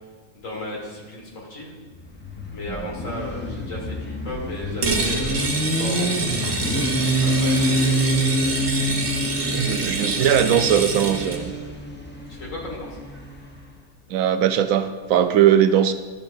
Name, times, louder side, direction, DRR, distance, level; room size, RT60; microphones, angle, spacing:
voice 1, 0.3-1.8 2.5-7.8 12.3-13.0, left 1 dB, 60° left, -2 dB, 2.2 m, -35 dB
Motorcycle, 2.0-13.7, equal, 10° left, 0.7 m, -27 dB
sound 1, 4.8-11.4, right 3 dB, 45° right, 1.1 m, -26 dB
voice 2, 9.5-11.5 14.1-15.9, right 9 dB, 70° right, 10 dB, 1.0 m, -19 dB
12.5 x 7.3 x 2.6 m, 1.3 s
omnidirectional pair, 1.5 m